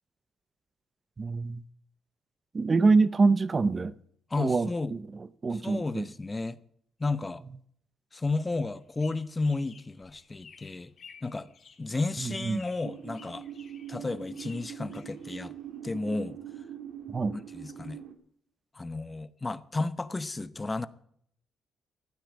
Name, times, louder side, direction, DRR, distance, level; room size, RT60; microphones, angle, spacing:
voice 1, 1.2-1.6 2.5-3.9 4.4-6.1 12.2-12.6 17.1-17.4, right 4 dB, 30° right, 0.7 m, -26 dB
voice 2, 4.3-4.9 5.5-6.6 7.0-7.4 8.1-10.9 11.2-11.5 11.8-13.5 13.9-15.5 15.8-16.4 17.5-18.0 18.7-20.9, left 3 dB, 20° left, 0.9 m, -32 dB
sound 1, 8.7-15.8, left 6 dB, 50° left, 2.1 m, -55 dB
sound 2, 12.8-18.1, right 9 dB, 75° right, 2.1 m, -43 dB
15.0 x 9.1 x 8.2 m
cardioid pair, 90°, 0 cm